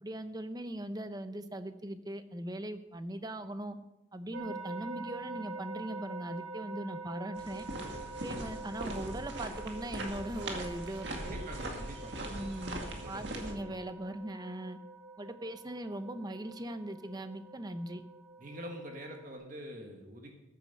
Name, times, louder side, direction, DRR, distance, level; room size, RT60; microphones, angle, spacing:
voice 1, 0.0-3.8 4.1-7.7 8.2-11.4 12.3-14.8 15.2-18.0, right 1 dB, 20° right, 10 dB, 0.7 m, -40 dB
sound 1, 4.3-19.3, right 3 dB, 85° right, 1.5 m, -46 dB
sound 2, 7.3-13.5, right 1 dB, 65° right, 2.1 m, -40 dB
voice 2, 11.1-12.3 12.9-13.7 18.4-20.3, equal, 45° right, 3 dB, 1.6 m, -45 dB
14.5 x 9.2 x 5.4 m, 0.97 s
head